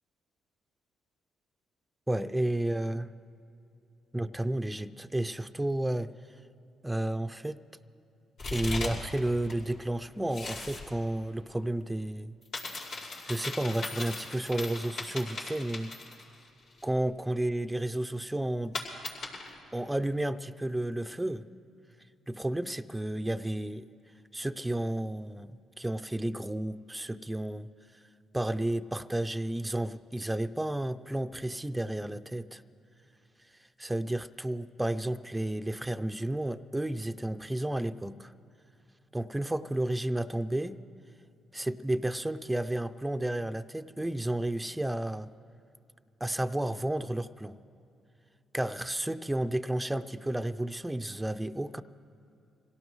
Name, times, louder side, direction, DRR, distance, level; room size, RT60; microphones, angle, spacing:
voice 1, 2.1-3.1 4.1-6.1 6.8-7.6 8.5-12.3 13.0-15.9 16.8-18.8 19.7-21.4 22.3-23.9 24.3-27.7 28.3-32.6 33.8-38.3 39.1-40.8 41.5-45.3 46.2-47.6 48.5-51.8, right 1 dB, 10° right, 9 dB, 0.5 m, -32 dB
sound 1, 8.4-9.2 9.4-10.9 12.4-16.4 16.8-16.9 18.7-19.6, left 3 dB, 75° left, 5.1 m, -38 dB
25.5 x 17.5 x 3.2 m, 2.7 s
supercardioid pair, 70°, 0 cm